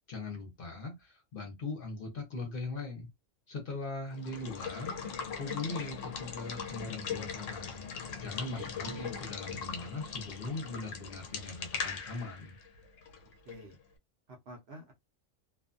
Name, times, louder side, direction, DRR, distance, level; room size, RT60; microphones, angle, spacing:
voice 1, 0.1-3.1 3.5-7.8 8.2-12.6, left 3 dB, 50° left, 0.9 m, -40 dB
Water / Water tap faucet / Liquid, 4.1-13.7, left 6 dB, 80° left, 1.0 m, -40 dB
voice 2, 8.5-9.3 13.4-13.8 14.3-14.9, right 2 dB, 60° right, 0.9 m, -48 dB
2.6 x 2.3 x 2.4 m
omnidirectional pair, 1.3 m